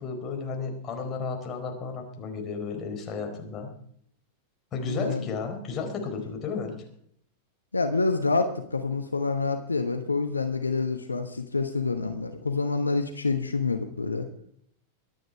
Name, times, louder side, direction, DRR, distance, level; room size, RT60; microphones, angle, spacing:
voice 1, 0.0-3.7 4.7-6.8, left 4 dB, 30° left, 2 dB, 4.2 m, -33 dB
voice 2, 4.8-5.3 7.7-14.3, left 4 dB, 80° left, 7 dB, 1.1 m, -27 dB
23.5 x 9.4 x 4.6 m, 0.67 s
figure-of-eight pair, 90°, 0 cm